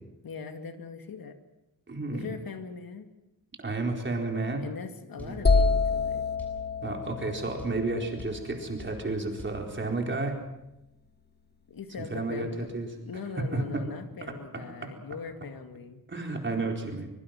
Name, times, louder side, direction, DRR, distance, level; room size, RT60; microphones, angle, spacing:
voice 1, 0.2-1.4 2.1-3.1 4.6-6.2 11.7-12.7 13.0-16.0, left 5 dB, 75° left, 6 dB, 2.2 m, -40 dB
voice 2, 1.9-2.3 3.6-4.6 5.2-5.4 6.8-10.4 12.0-12.9 13.4-13.9 14.2-14.9 16.1-17.1, right 3 dB, 35° right, 1 dB, 4.3 m, -32 dB
sound 1, 5.2-5.4 6.4-6.6 7.6-7.8 8.2-8.4 8.8-9.0 9.4-9.6, equal, 5° left, 7.5 m, -45 dB
sound 2, 5.4-9.2, left 4 dB, 30° left, 1.3 m, -27 dB
24.0 x 23.0 x 5.9 m, 0.89 s
wide cardioid pair, 145°, 35 cm